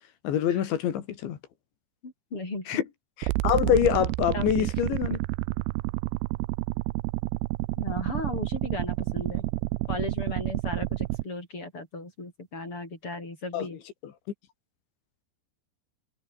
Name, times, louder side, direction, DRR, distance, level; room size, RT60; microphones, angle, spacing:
voice 1, 0.2-1.4 2.7-2.8 3.2-5.2 13.5-13.7, left 10 dB, 75° left, 4.9 m, -25 dB
voice 2, 2.0-2.8 4.3-4.7 7.8-9.4 9.9-13.8, left 2 dB, 30° left, 7.8 m, -36 dB
sound 1, 3.2-11.2, right 22 dB, 80° right, 2.6 m, -29 dB
omnidirectional pair, 5.3 m